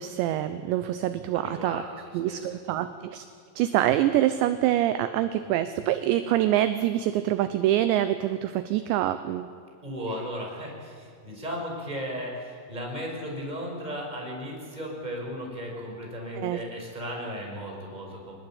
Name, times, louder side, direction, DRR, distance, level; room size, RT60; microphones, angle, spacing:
voice 1, 0.0-1.8 2.1-3.3 3.6-9.5 16.4-16.6, right 12 dB, 80° right, 11 dB, 2.7 m, -25 dB
voice 2, 1.3-2.0 2.3-2.6 9.8-18.3, equal, 10° right, 0 dB, 5.2 m, -36 dB
25.5 x 20.5 x 8.9 m, 2.3 s
omnidirectional pair, 5.8 m